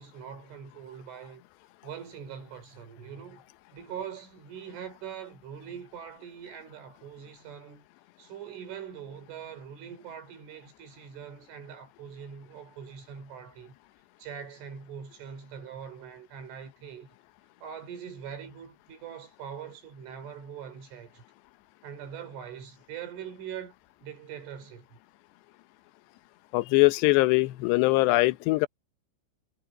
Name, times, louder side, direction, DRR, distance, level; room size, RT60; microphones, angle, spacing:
voice 1, 0.0-1.4 1.8-3.5 3.7-7.9 8.2-13.8 14.2-17.1 17.6-21.2 21.8-23.8 24.0-24.9, right 8 dB, 75° right, 7.2 m, -42 dB
voice 2, 26.5-28.7, left 21 dB, 75° left, 2.6 m, -22 dB
omnidirectional pair, 5.7 m